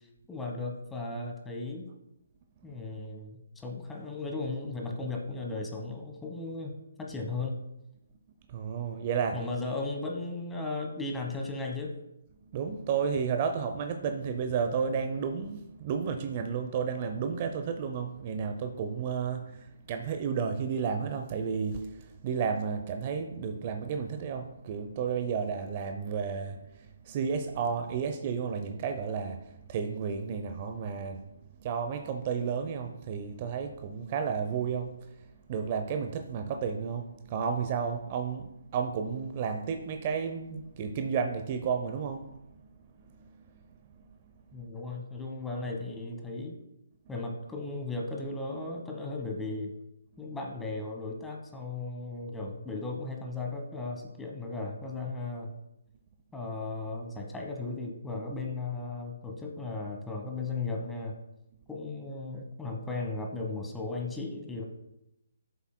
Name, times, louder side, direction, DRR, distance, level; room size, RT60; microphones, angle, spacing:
voice 1, 0.3-1.9 2.6-7.7 9.3-11.9 44.5-46.6 47.1-49.7 50.2-55.5 56.3-61.2 61.7-64.6, left 3 dB, 5° left, 1 dB, 1.2 m, -36 dB
voice 2, 8.5-9.4 12.5-26.6 27.0-31.2 31.6-34.9 35.5-42.2, right 6 dB, 35° right, 7 dB, 0.6 m, -32 dB
12.5 x 7.0 x 2.2 m, 0.89 s
figure-of-eight pair, 145°, 0 cm